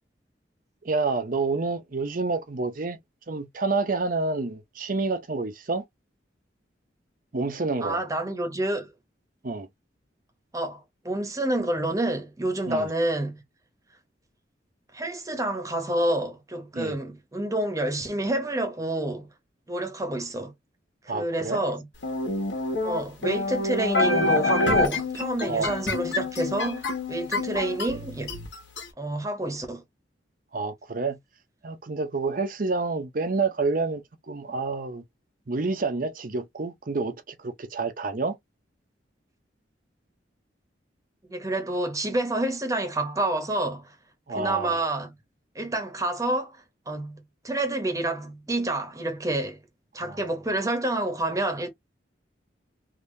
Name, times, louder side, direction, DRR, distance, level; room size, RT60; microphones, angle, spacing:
voice 1, 0.8-3.0 3.3-5.8 7.3-8.0 9.4-9.7 12.7-12.9 16.7-17.0 21.1-21.6 25.5-25.8 30.5-31.2 31.6-35.0 35.5-38.4 44.3-44.8 50.0-50.2, right 3 dB, 50° right, 0.7 m, -28 dB
voice 2, 7.8-8.9 10.5-13.4 14.9-19.3 19.7-20.5 21.0-21.9 22.8-28.4 29.0-29.8 41.3-43.9 44.3-45.1 45.5-49.6 49.9-51.7, right 1 dB, 20° right, 1.1 m, -28 dB
sound 1, 22.0-28.9, left 2 dB, 85° left, 1.5 m, -27 dB
3.6 x 2.7 x 2.6 m
head